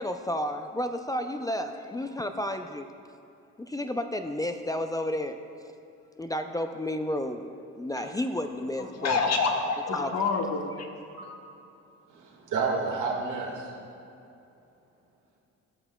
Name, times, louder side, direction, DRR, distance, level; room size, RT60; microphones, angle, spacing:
voice 1, 0.0-2.9 3.6-5.7 6.2-9.2 9.9-10.1, left 1 dB, 15° left, 7 dB, 0.3 m, -32 dB
voice 2, 8.8-10.9, left 4 dB, 60° left, 3 dB, 1.1 m, -27 dB
voice 3, 12.1-13.7, right 4 dB, 85° right, -1 dB, 1.7 m, -31 dB
16.5 x 5.9 x 2.2 m, 2.7 s
cardioid pair, 90°, 30 cm